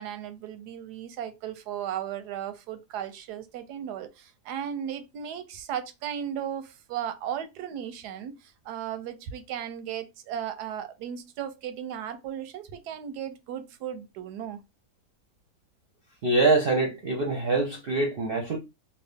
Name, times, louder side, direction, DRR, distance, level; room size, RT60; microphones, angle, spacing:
voice 1, 0.0-14.6, right 9 dB, 90° right, 1.2 m, -36 dB
voice 2, 16.2-18.6, right 3 dB, 50° right, 0.7 m, -24 dB
3.0 x 2.4 x 3.3 m
omnidirectional pair, 1.7 m